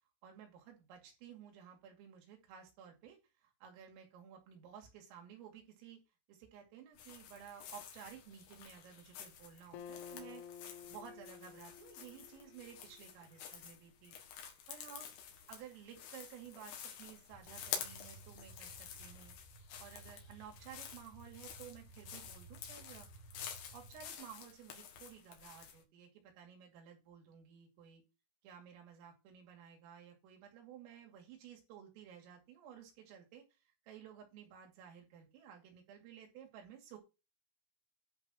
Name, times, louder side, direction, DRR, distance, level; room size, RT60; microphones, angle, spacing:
voice 1, 0.2-3.2 3.4-6.0 6.3-10.4 10.9-14.2 14.7-15.1 15.5-19.4 19.8-28.0 28.4-33.4 33.9-37.0, right 8 dB, 85° right, 2 dB, 5.1 m, -54 dB
sound 1, 6.9-25.8, left 8 dB, 70° left, 4.0 m, -50 dB
Acoustic guitar, 9.7-13.3, left 8 dB, 85° left, 2.2 m, -52 dB
sound 2, 17.3-24.1, right 3 dB, 50° right, 4.5 m, -58 dB
11.0 x 4.6 x 6.4 m, 0.28 s
omnidirectional pair, 5.7 m